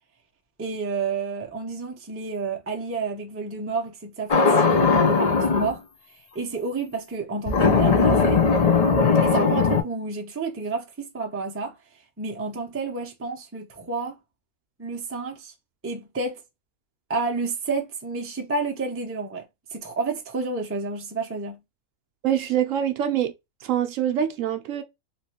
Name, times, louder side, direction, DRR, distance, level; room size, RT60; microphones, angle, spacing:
voice 1, 0.6-5.8 6.3-8.4 9.2-11.7 12.2-14.2 14.8-15.5 15.8-16.4 17.1-19.4 19.7-21.6, right 3 dB, 15° right, 0.4 m, -30 dB
sound 1, 4.3-5.7 7.5-9.8, left 4 dB, 55° left, 0.4 m, -19 dB
voice 2, 22.2-23.3 23.6-24.8, right 10 dB, 70° right, 0.9 m, -24 dB
3.0 x 2.9 x 2.8 m
omnidirectional pair, 1.5 m